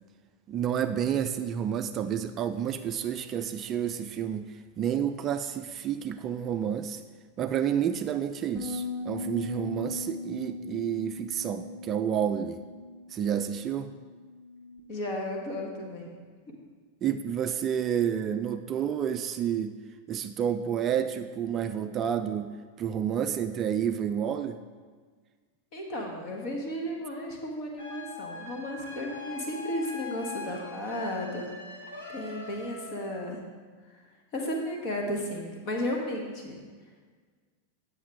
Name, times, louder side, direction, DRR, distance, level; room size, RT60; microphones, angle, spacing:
voice 1, 0.5-7.0 7.4-12.6 13.1-13.9 17.0-19.8 20.1-22.5 22.8-24.6, right 9 dB, 30° right, 9 dB, 0.3 m, -30 dB
sound 1, 8.5-14.8, left 3 dB, 15° right, 0.8 m, -39 dB
voice 2, 14.9-16.1 25.7-31.5 32.1-33.4 34.3-36.6, left 1 dB, 40° left, 1 dB, 1.4 m, -34 dB
sound 2, 27.8-33.3, left 3 dB, 65° left, 1.6 m, -42 dB
8.5 x 6.6 x 3.5 m, 1.5 s
figure-of-eight pair, 90°, 0 cm